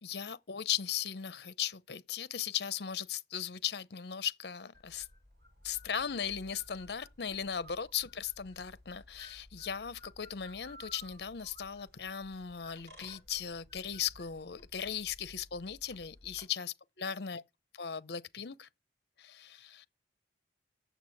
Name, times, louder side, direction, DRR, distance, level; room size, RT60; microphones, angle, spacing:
voice 1, 0.0-5.1 5.6-17.4 17.7-18.7 19.2-19.9, left 8 dB, 65° left, 0.7 m, -38 dB
sound 1, 4.7-16.4, left 1 dB, 60° right, 5.7 m, -56 dB
8.1 x 7.1 x 7.3 m
head